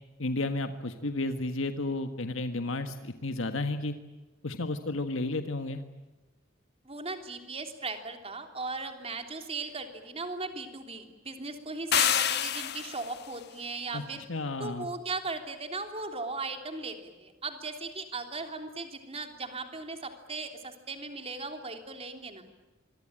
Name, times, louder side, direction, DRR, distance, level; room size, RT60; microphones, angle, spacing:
voice 1, 0.2-3.9 4.4-5.8 13.9-14.0 14.3-14.9, left 2 dB, 75° left, 8 dB, 1.6 m, -32 dB
voice 2, 6.8-14.2 14.6-22.4, right 3 dB, 30° right, 6 dB, 3.3 m, -37 dB
sound 1, 11.9-13.2, left 9 dB, 55° left, 1.4 m, -27 dB
26.0 x 23.5 x 8.9 m, 1.2 s
head